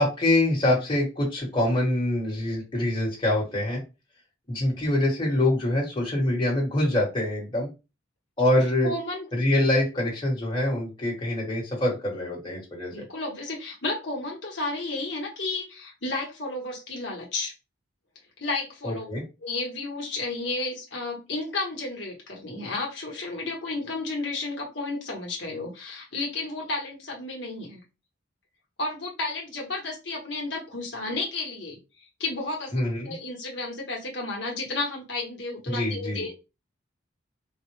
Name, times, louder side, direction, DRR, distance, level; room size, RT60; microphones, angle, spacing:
voice 1, 0.0-3.8 4.5-7.7 8.4-8.9 9.3-13.1 18.8-19.2 32.7-33.1 35.7-36.2, left 1 dB, 25° left, -4 dB, 1.3 m, -25 dB
voice 2, 8.5-9.3 12.9-17.5 18.4-19.1 19.4-27.8 28.8-36.4, left 2 dB, 60° left, -1 dB, 1.0 m, -32 dB
4.0 x 2.1 x 3.1 m, 0.28 s
head